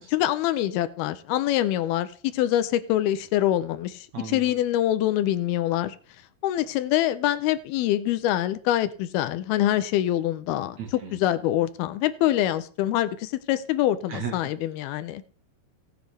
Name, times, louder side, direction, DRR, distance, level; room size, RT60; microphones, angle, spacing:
voice 1, 0.0-6.0 6.4-10.8 11.1-15.2, left 13 dB, 80° left, 2.5 m, -25 dB
voice 2, 4.1-4.5 10.8-11.2 14.1-14.5, right 6 dB, 55° right, 2.5 m, -35 dB
17.5 x 7.7 x 3.4 m
omnidirectional pair, 4.5 m